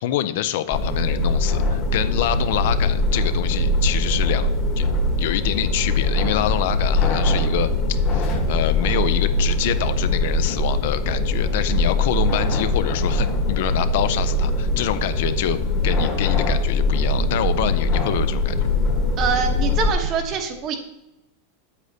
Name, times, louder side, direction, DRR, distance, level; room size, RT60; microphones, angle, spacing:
voice 1, 0.0-4.5 4.8-4.9 5.2-7.7 8.1-15.6 15.8-18.6, left 12 dB, 60° left, 12 dB, 0.4 m, -26 dB
sound 1, 0.7-19.9, left 2 dB, 25° left, 1.1 m, -21 dB
voice 2, 19.2-20.8, right 6 dB, 30° right, 6 dB, 0.9 m, -24 dB
8.2 x 7.8 x 2.7 m, 0.96 s
supercardioid pair, 165°, 0 cm